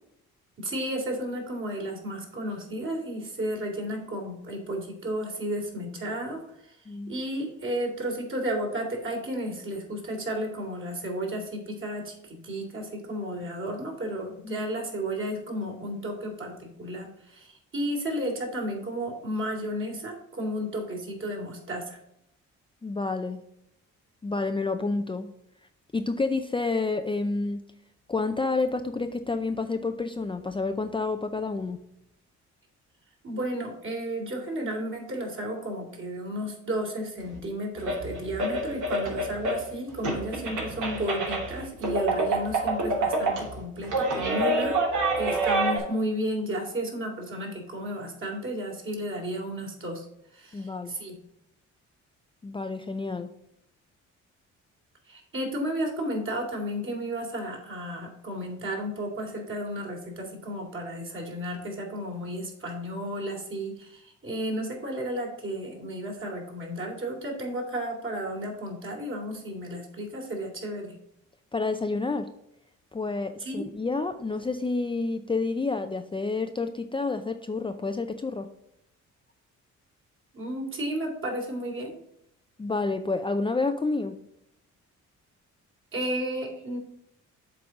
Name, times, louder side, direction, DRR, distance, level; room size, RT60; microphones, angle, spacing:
voice 1, 0.6-22.0 33.2-44.8 45.2-50.1 50.3-51.2 55.0-71.0 73.4-73.6 80.3-81.9 85.9-86.8, equal, 40° right, -1 dB, 3.1 m, -33 dB
voice 2, 22.8-23.4 24.2-25.3 25.9-27.6 28.1-31.8 50.5-50.9 52.4-53.3 71.5-72.3 72.9-78.5 82.6-84.2, left 3 dB, 15° left, 7 dB, 0.5 m, -29 dB
sound 1, 37.3-37.4 37.8-39.7 40.0-45.8, right 2 dB, 80° right, 2.9 m, -27 dB
7.7 x 4.0 x 6.0 m, 0.79 s
cardioid pair, 90°, 30 cm